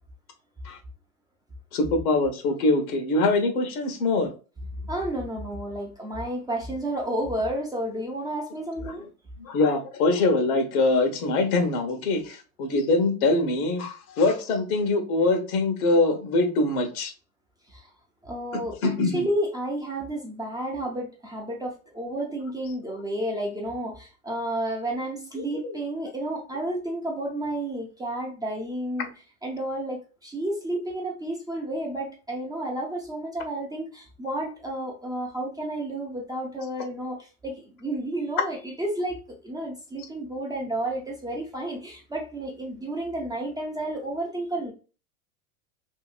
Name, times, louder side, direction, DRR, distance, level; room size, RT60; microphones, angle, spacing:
voice 1, 1.7-4.3 9.4-17.1 18.8-19.3 25.6-25.8, left 2 dB, 70° left, 5 dB, 1.1 m, -23 dB
voice 2, 4.8-9.1 17.7-17.9 18.2-29.1 29.4-44.7, right 1 dB, 10° right, -1 dB, 0.5 m, -31 dB
2.8 x 2.6 x 2.4 m, 0.35 s
hypercardioid pair, 110°, 44 cm